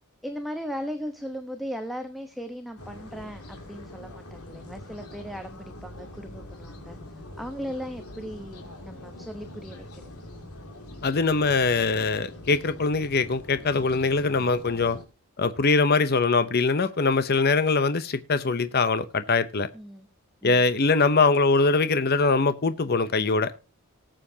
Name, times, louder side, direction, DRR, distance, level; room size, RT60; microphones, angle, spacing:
voice 1, 0.2-10.0 19.7-20.1, equal, ahead, 1.0 m, -37 dB
sound 1, 2.8-15.1, left 1 dB, 85° left, 2.8 m, -43 dB
voice 2, 11.0-15.0 15.4-19.7 20.4-23.5, left 4 dB, 45° left, 0.8 m, -22 dB
19.0 x 7.7 x 2.8 m
head